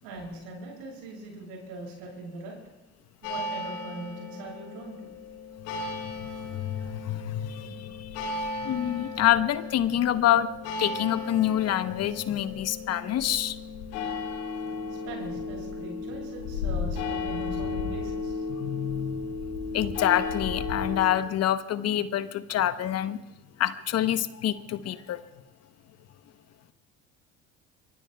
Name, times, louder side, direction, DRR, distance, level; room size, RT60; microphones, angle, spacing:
voice 1, 0.0-2.6 3.2-5.1 15.0-18.5, right 2 dB, 75° right, -1 dB, 7.4 m, -41 dB
sound 1, 3.2-21.1, left 4 dB, 80° left, 2.6 m, -34 dB
voice 2, 6.1-10.5 10.8-13.6 18.5-19.2 19.7-23.2 23.6-25.2, left 12 dB, 50° left, 12 dB, 0.9 m, -27 dB
24.0 x 23.0 x 2.3 m, 1.0 s
hypercardioid pair, 70°, 33 cm